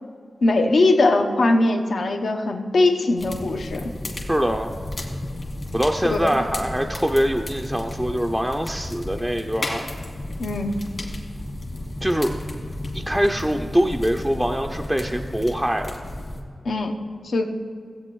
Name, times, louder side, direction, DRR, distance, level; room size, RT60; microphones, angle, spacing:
voice 1, 0.4-3.9 6.1-6.3 10.4-10.7 16.6-16.9 17.2-17.4, left 2 dB, 70° left, 4 dB, 0.8 m, -20 dB
sound 1, 3.2-16.4, left 1 dB, 45° left, 1.8 m, -33 dB
voice 2, 4.3-4.7 5.7-9.8 12.0-12.4 12.9-15.9, equal, 5° right, 2 dB, 0.4 m, -23 dB
17.0 x 8.4 x 3.1 m, 2.2 s
wide cardioid pair, 140°, 0 cm